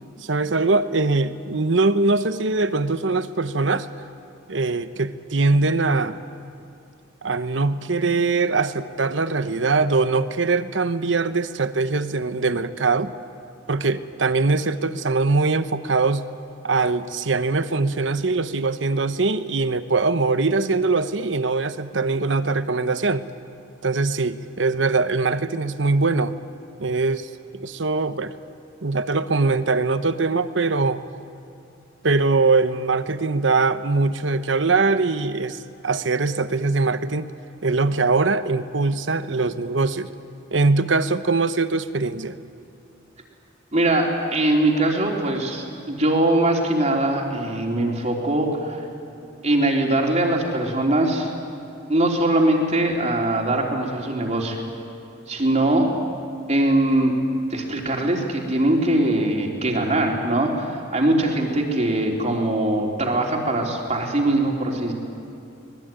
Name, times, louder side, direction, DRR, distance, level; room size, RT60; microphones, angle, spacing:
voice 1, 0.2-3.9 4.5-6.2 7.2-13.1 13.7-16.3 16.6-23.2 23.8-26.3 26.8-28.4 28.8-31.0 32.0-37.3 37.6-40.1 40.5-42.4, right 3 dB, 75° right, 12 dB, 1.0 m, -22 dB
voice 2, 43.7-48.8 49.4-51.3 51.9-54.6 55.3-55.9 56.5-57.1 57.5-64.9, right 1 dB, 35° right, 0 dB, 3.6 m, -21 dB
25.0 x 20.5 x 9.3 m, 2.7 s
head